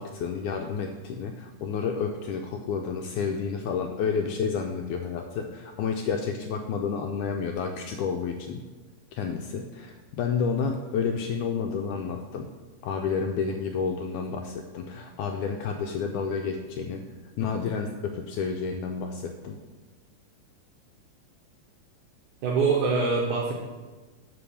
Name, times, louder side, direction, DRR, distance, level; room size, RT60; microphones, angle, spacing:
voice 1, 0.0-8.6 9.1-12.5 12.8-17.1 17.4-19.6, left 5 dB, 80° left, 3 dB, 1.8 m, -30 dB
voice 2, 22.4-23.5, right 4 dB, 70° right, -2 dB, 2.2 m, -24 dB
9.6 x 3.9 x 7.0 m, 1.3 s
omnidirectional pair, 4.0 m